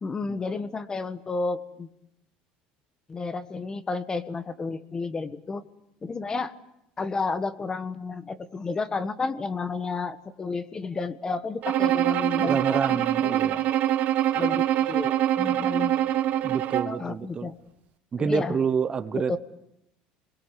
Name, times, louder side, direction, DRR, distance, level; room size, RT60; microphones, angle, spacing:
voice 1, 0.0-1.9 3.1-5.6 6.0-6.5 7.0-13.4 14.3-16.0 16.9-17.5 18.2-18.6 19.1-19.4, left 4 dB, 20° left, 12 dB, 1.5 m, -31 dB
Bowed string instrument, 11.6-17.0, right 12 dB, 55° right, 1.2 m, -24 dB
voice 2, 12.4-13.7 16.4-17.5 18.1-19.4, right 6 dB, 30° right, 12 dB, 1.0 m, -28 dB
27.5 x 22.0 x 8.5 m, 0.82 s
supercardioid pair, 115°, 3 cm